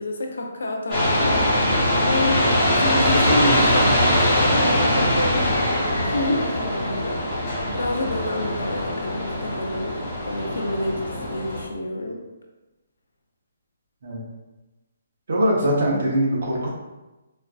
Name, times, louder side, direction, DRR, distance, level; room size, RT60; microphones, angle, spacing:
voice 1, 0.0-2.4 2.7-5.7 6.0-10.0 10.3-12.2, left 1 dB, 80° left, 2 dB, 0.6 m, -29 dB
sound 1, 0.9-11.6, equal, 10° left, 1.0 m, -22 dB
voice 2, 15.3-16.7, equal, 45° right, -2 dB, 0.8 m, -22 dB
4.2 x 2.4 x 2.4 m, 1.1 s
hypercardioid pair, 180°, 0 cm